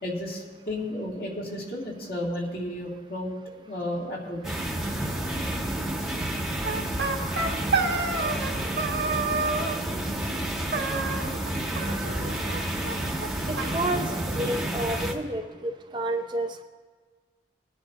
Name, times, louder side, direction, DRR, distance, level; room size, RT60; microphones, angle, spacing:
voice 1, 0.0-3.3 3.7-4.6, left 1 dB, 55° left, -3 dB, 2.7 m, -33 dB
sound 1, 4.4-15.1, right 1 dB, ahead, 1.1 m, -30 dB
sound 2, 6.6-8.5 8.8-9.8 10.7-11.5 11.8-12.6 12.8-12.9 13.2-13.3 13.6-14.6, right 3 dB, 80° right, 1.2 m, -29 dB
voice 2, 13.5-16.6, right 1 dB, 25° right, 4 dB, 0.5 m, -30 dB
21.5 x 10.0 x 2.9 m, 1.5 s
head